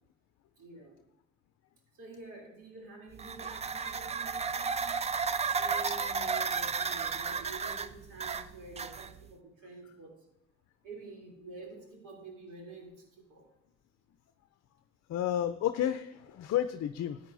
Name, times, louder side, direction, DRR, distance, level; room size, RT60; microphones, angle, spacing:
voice 1, 0.6-0.9 1.9-4.9 5.5-10.2 10.8-13.5, right 3 dB, 80° right, -1 dB, 3.1 m, -48 dB
sound 1, 3.1-9.3, right 5 dB, 20° right, 0.4 m, -33 dB
voice 2, 15.1-17.2, left 11 dB, 60° left, 10 dB, 0.5 m, -31 dB
14.5 x 8.4 x 2.6 m, 0.87 s
cardioid pair, 90°, 30 cm